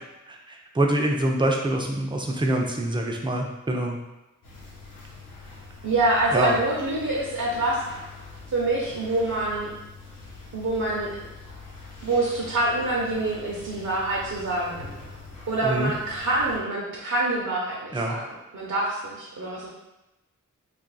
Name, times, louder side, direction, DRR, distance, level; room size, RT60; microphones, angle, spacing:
voice 1, 0.3-4.0 6.3-6.6 15.6-15.9 17.9-18.2, right 1 dB, 15° right, 0 dB, 0.5 m, -25 dB
sound 1, 4.4-16.6, left 3 dB, 85° left, 0.9 m, -44 dB
voice 2, 5.8-7.8 8.5-9.7 10.5-11.1 12.0-14.8 15.5-18.2 18.5-19.7, right 2 dB, 60° right, -4 dB, 0.7 m, -26 dB
2.5 x 2.5 x 3.8 m, 1.0 s
wide cardioid pair, 70°, 31 cm